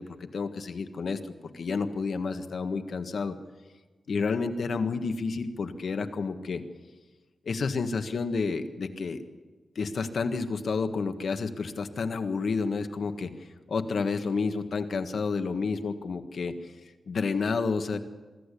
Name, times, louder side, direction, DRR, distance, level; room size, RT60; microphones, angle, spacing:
voice 1, 0.0-3.3 4.1-6.6 7.4-9.2 9.7-13.3 13.7-16.7 17.1-18.0, left 4 dB, 65° left, 7 dB, 1.5 m, -30 dB
23.5 x 14.0 x 8.4 m, 1.3 s
wide cardioid pair, 125°, 0 cm